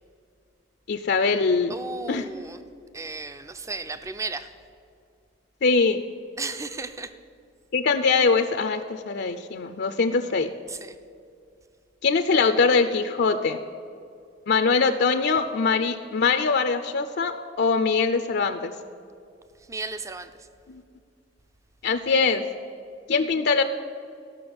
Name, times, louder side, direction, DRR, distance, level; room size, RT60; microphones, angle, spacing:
voice 1, 0.9-1.7 2.1-2.3 5.6-6.0 7.7-10.5 12.0-13.6 14.5-18.7 20.7-20.8 21.8-22.5 23.1-23.6, left 4 dB, 60° left, 8 dB, 0.5 m, -22 dB
voice 2, 1.7-2.6 2.9-4.5 6.4-7.1 10.7-11.0 19.6-20.5, right 3 dB, 15° right, 11 dB, 0.5 m, -34 dB
14.0 x 5.9 x 7.8 m, 2.4 s
head